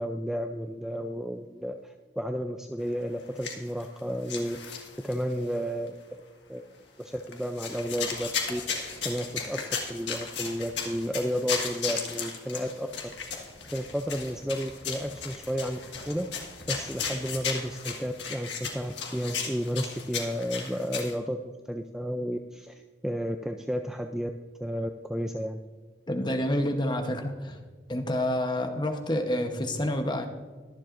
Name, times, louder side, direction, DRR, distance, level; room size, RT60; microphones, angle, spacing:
voice 1, 0.0-6.0 6.5-12.9 13.3-13.4 13.7-15.8 16.1-24.3 24.6-25.6, equal, 5° right, 4 dB, 0.3 m, -32 dB
sound 1, 3.2-4.0 4.3-5.3 5.9-6.0 7.2-21.1, left 6 dB, 75° left, 1.6 m, -35 dB
voice 2, 26.1-27.6 27.9-30.3, left 1 dB, 25° left, 5 dB, 0.9 m, -28 dB
22.5 x 7.5 x 2.5 m, 1.4 s
head